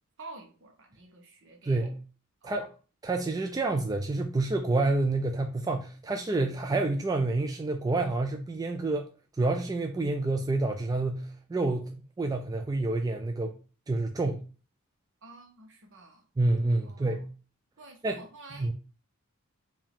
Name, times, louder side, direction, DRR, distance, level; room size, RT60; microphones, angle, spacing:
voice 1, 0.2-1.8 2.4-2.7 15.2-16.2 16.8-17.3 17.8-18.7, right 2 dB, 60° right, 1.1 m, -49 dB
voice 2, 1.7-2.0 2.4-2.7 3.0-9.1 9.4-13.5 13.9-14.4 16.4-17.3 18.0-18.2 18.6-18.7, right 2 dB, 15° right, 0.3 m, -28 dB
4.9 x 2.7 x 3.5 m
head